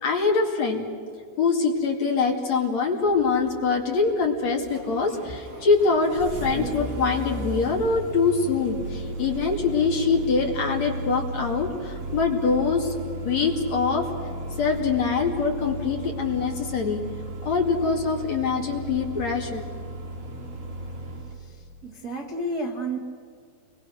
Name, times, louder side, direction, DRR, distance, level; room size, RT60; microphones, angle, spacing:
voice 1, 0.0-0.9 1.4-13.0 13.2-14.1 14.6-17.0 17.4-19.6, left 4 dB, 45° left, 0 dB, 2.9 m, -24 dB
Engine starting, 3.0-21.4, right 2 dB, 45° right, 4.6 m, -35 dB
voice 2, 21.3-23.0, right 1 dB, 85° right, -1 dB, 0.8 m, -32 dB
30.0 x 24.0 x 6.5 m, 2.2 s
omnidirectional pair, 5.7 m